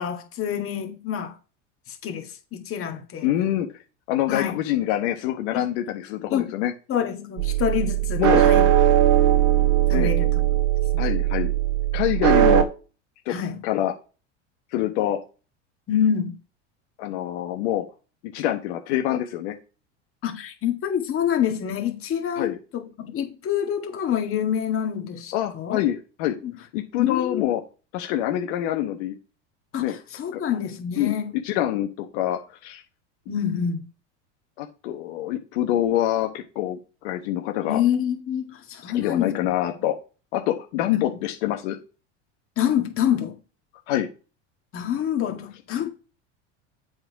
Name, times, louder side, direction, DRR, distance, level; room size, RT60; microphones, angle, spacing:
voice 1, 0.0-1.3 1.9-3.3 4.3-4.6 5.5-5.6 6.3-6.5 6.9-8.7 9.9-10.3 10.9-11.1 13.3-13.6 15.9-16.3 20.2-25.8 26.4-26.5 27.0-27.4 29.7-31.3 33.3-33.9 37.6-39.4 40.9-41.2 42.6-43.4 44.7-45.9, left 9 dB, 40° left, 1.9 m, -27 dB
voice 2, 3.2-3.7 4.1-6.7 8.2-8.4 9.9-10.1 11.0-11.5 11.9-12.7 13.2-13.3 13.6-13.9 14.7-15.2 17.0-17.8 18.3-19.6 22.4-22.6 25.3-26.4 26.7-27.6 27.9-29.2 29.8-30.0 30.3-30.4 31.0-31.2 31.4-31.9 32.1-32.8 34.6-36.8 37.0-37.8 38.8-40.0 40.3-41.8 43.9-44.1, left 12 dB, 70° left, 1.2 m, -25 dB
sound 1, 7.4-12.6, right 12 dB, 55° right, 1.2 m, -19 dB
7.8 x 3.9 x 4.7 m
supercardioid pair, 105°, 35 cm